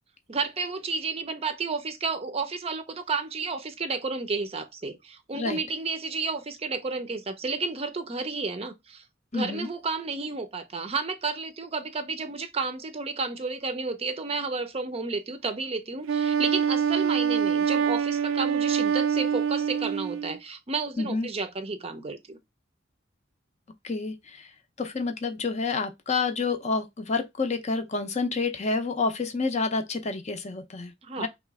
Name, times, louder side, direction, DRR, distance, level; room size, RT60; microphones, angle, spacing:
voice 1, 0.3-9.0 9.3-22.4 31.0-31.3, right 4 dB, 30° right, 0.5 m, -32 dB
voice 2, 9.3-9.7 21.0-21.3 23.8-24.5 24.8-30.9 31.2-31.3, left 4 dB, 35° left, 0.6 m, -28 dB
Wind instrument woodwind instrument, 16.1-20.4, right 7 dB, 85° right, 0.4 m, -25 dB
3.2 x 3.0 x 4.6 m
head